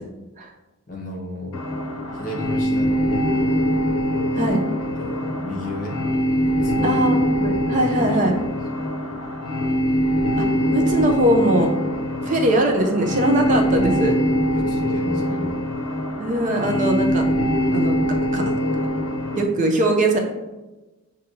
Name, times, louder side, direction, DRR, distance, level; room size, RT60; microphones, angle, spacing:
voice 1, 0.9-1.6 2.1-3.6 5.0-6.0 6.4-7.1 7.4-8.4 12.2-12.4 14.5-15.6, left 1 dB, 40° left, 0 dB, 0.8 m, -33 dB
sound 1, 1.5-19.4, equal, 85° left, 0.6 m, -23 dB
voice 2, 6.8-8.3 10.4-11.7 12.2-14.2 16.2-17.2 17.7-17.9 18.3-18.4 19.4-20.2, right 1 dB, 35° right, 3 dB, 0.5 m, -21 dB
6.4 x 2.7 x 2.7 m, 1.1 s
head